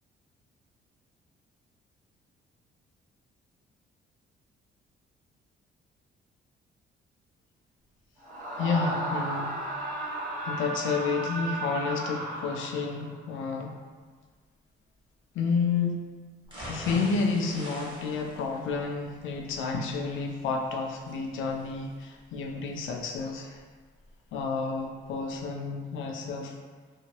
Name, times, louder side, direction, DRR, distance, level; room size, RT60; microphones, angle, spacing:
Screaming, 8.2-13.1, right 1 dB, 40° right, 0.8 m, -34 dB
voice 1, 8.6-9.5 10.0-10.1 10.4-13.8 15.3-16.0 16.6-23.6 24.3-26.6, left 4 dB, 80° left, 2 dB, 0.5 m, -30 dB
sound 1, 16.4-24.4 24.8-24.9 25.3-25.4, equal, 25° right, 1.2 m, -45 dB
2.7 x 2.7 x 2.9 m, 1.5 s
cardioid pair, 90°, 20 cm